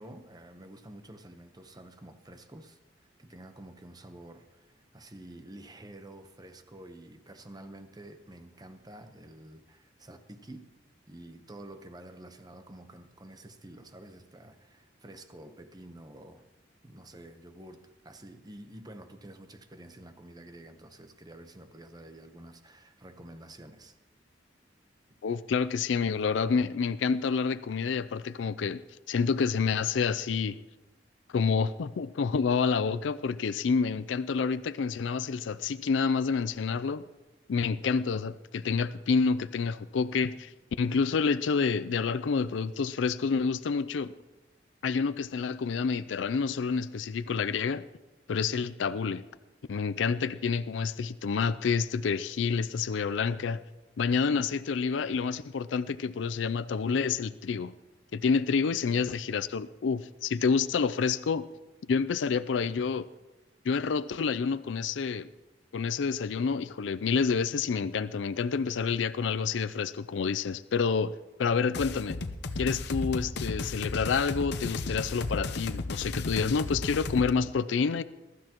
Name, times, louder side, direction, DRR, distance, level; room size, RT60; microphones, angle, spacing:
voice 1, 0.0-10.7 11.1-16.4 16.8-24.0 58.8-59.1, right 1 dB, 20° right, 8 dB, 0.9 m, -49 dB
voice 2, 25.2-28.8 29.1-30.6 31.3-37.1 37.5-44.1 44.8-47.8 48.3-49.2 49.7-53.6 54.0-57.7 58.1-61.5 61.9-63.1 63.6-65.3 65.7-71.1 71.4-72.2 72.6-78.0, left 5 dB, 85° left, 14 dB, 0.4 m, -28 dB
sound 1, 71.7-77.3, left 3 dB, 65° left, 0.8 m, -34 dB
21.5 x 12.5 x 3.0 m, 1.1 s
head